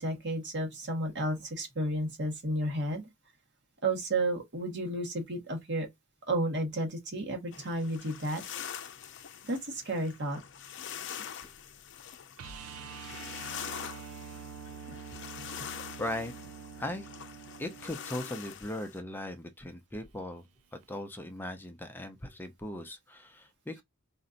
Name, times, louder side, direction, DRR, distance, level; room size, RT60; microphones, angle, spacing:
voice 1, 0.0-3.0 3.8-5.9 6.3-8.4 9.4-10.4 14.9-15.0, right 1 dB, 55° right, 1.5 m, -32 dB
sound 1, 7.5-19.0, left 9 dB, 60° left, 0.6 m, -44 dB
sound 2, 12.4-18.3 20.8-20.9, right 6 dB, 90° right, 0.4 m, -46 dB
voice 2, 16.0-16.3 16.8-17.1 17.6-20.4 20.9-23.8, left 1 dB, 10° left, 0.5 m, -38 dB
4.2 x 2.6 x 3.9 m
head